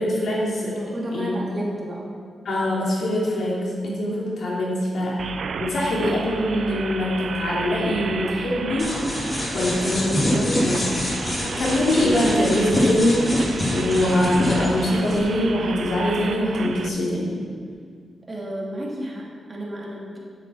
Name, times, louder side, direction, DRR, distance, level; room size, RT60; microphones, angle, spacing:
voice 1, 0.0-0.7 1.1-1.3 2.4-5.2 5.6-8.9 9.5-11.1 11.4-17.3, left 1 dB, 75° left, -5 dB, 3.0 m, -23 dB
voice 2, 0.7-2.0 18.3-20.2, right 1 dB, 40° right, -3 dB, 2.7 m, -32 dB
sound 1, 5.2-16.9, right 5 dB, 75° right, 0.5 m, -33 dB
sound 2, 8.8-15.2, left 1 dB, 30° left, 2.5 m, -26 dB
8.3 x 7.8 x 5.9 m, 2.1 s
cardioid pair, 65°, 0 cm